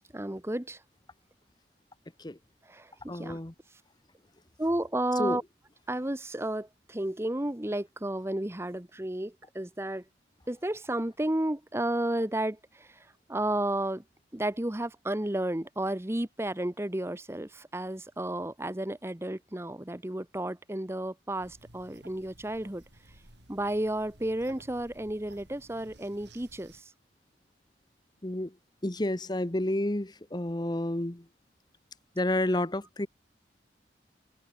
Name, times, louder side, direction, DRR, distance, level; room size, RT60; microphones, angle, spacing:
voice 1, 0.1-0.8 2.7-3.4 4.6-5.4 5.9-10.0 10.5-14.0 14.3-22.8 23.5-26.9 32.4-32.6, right 1 dB, 15° right, 0.9 m, -32 dB
voice 2, 3.1-3.5 5.2-5.4 28.2-28.5 28.8-31.2 32.2-33.1, left 1 dB, 25° left, 1.0 m, -30 dB
sound 1, 21.4-26.8, right 1 dB, 75° right, 7.6 m, -55 dB
open air
head